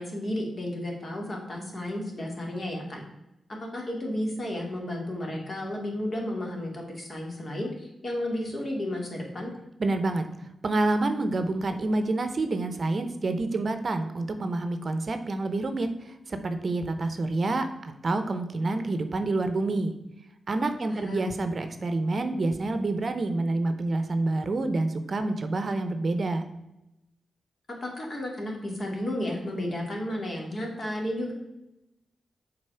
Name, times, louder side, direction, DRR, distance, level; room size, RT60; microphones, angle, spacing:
voice 1, 0.0-3.0 3.5-9.5 20.8-21.3 27.7-31.3, left 1 dB, 40° left, 0 dB, 2.3 m, -33 dB
voice 2, 9.8-10.3 10.6-19.9 20.5-26.4, right 2 dB, 50° right, 8 dB, 0.7 m, -28 dB
6.6 x 4.1 x 5.6 m, 0.92 s
cardioid pair, 75°, 0 cm